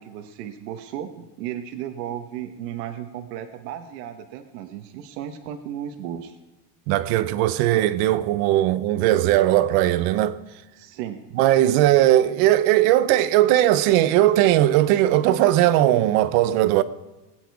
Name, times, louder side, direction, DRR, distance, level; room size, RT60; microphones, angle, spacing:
voice 1, 0.0-6.4 10.8-11.2, right 10 dB, 90° right, 1.3 m, -34 dB
voice 2, 6.9-10.4 11.3-16.8, right 13 dB, 60° right, 0.9 m, -18 dB
20.5 x 9.2 x 4.7 m
cardioid pair, 170°, 47 cm